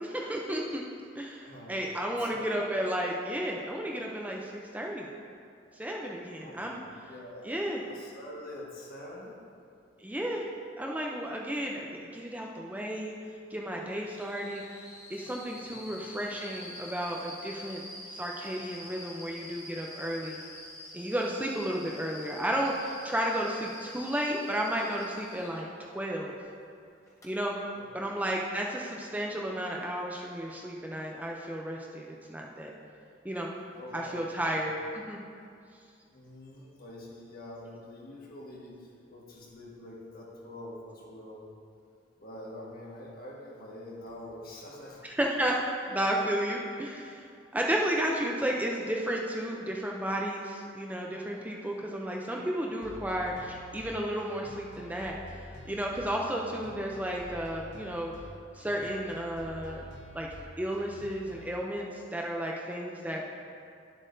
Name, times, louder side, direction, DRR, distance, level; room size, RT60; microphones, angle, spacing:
voice 1, 0.0-0.8 1.2-5.1 5.8-6.8 7.4-7.8 10.0-10.5 10.8-13.1 13.5-14.8 15.1-17.8 18.1-20.4 20.9-26.3 27.2-27.6 27.9-32.7 33.2-33.5 33.9-35.2 45.0-45.6 45.9-47.3 47.5-55.2 55.6-58.1 58.5-59.8 60.1-60.3 60.6-63.2, right 1 dB, 10° right, -1 dB, 0.5 m, -33 dB
voice 2, 1.4-1.8 2.0-2.6 6.3-9.4 15.6-15.7 27.7-27.9 33.7-34.7 36.1-41.5 42.2-45.0, left 1 dB, 50° left, -3 dB, 1.5 m, -46 dB
sound 1, 14.0-25.6 27.1-27.2, left 1 dB, 15° left, 1.3 m, -47 dB
sound 2, 52.8-61.5, equal, 70° left, 0.8 m, -48 dB
11.0 x 7.3 x 2.7 m, 2.4 s
head